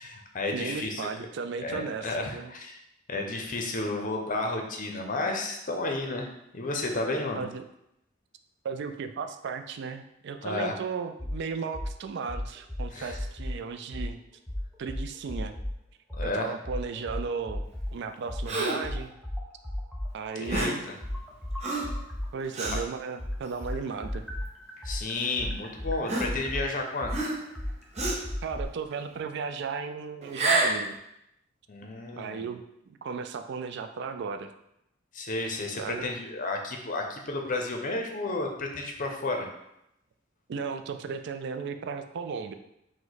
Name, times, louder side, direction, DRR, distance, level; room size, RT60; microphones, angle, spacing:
voice 1, 0.0-1.0 1.6-2.8 3.1-7.4 10.4-10.7 12.9-13.1 16.2-16.5 20.4-21.0 24.8-27.2 31.7-32.5 35.1-39.5, left 2 dB, 45° left, 3 dB, 0.6 m, -32 dB
voice 2, 0.5-2.5 7.3-7.6 8.6-14.2 14.8-15.5 16.2-17.6 17.9-19.1 20.1-20.8 22.3-24.2 28.4-31.0 32.1-32.6 33.0-34.5 35.7-36.1 40.5-42.5, right 5 dB, 60° right, 8 dB, 0.3 m, -35 dB
sound 1, 11.2-11.4 11.7-11.9 12.3-13.6 13.9-14.1 14.5-15.7 16.1-16.3 16.6-17.9 18.3-22.3 22.6-28.6, left 1 dB, ahead, 0.6 m, -34 dB
Gasp, 18.5-18.9 20.5-20.9 21.6-22.0 22.5-22.8 23.5-23.7 24.8-24.9 26.1-26.7 27.1-27.6 28.0-28.3 30.2-30.9, right 2 dB, 35° right, 0.7 m, -28 dB
4.8 x 2.2 x 4.0 m, 0.81 s
head